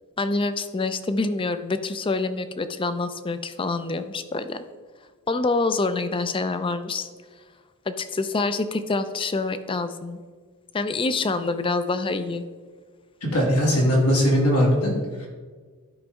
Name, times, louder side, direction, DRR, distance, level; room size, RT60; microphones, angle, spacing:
voice 1, 0.2-4.6 5.3-7.1 7.9-10.2 10.7-12.4, left 3 dB, 25° left, 11 dB, 0.4 m, -26 dB
voice 2, 13.2-14.9 15.2-15.3, equal, 90° left, -2 dB, 2.4 m, -20 dB
12.0 x 5.2 x 3.5 m, 1.5 s
head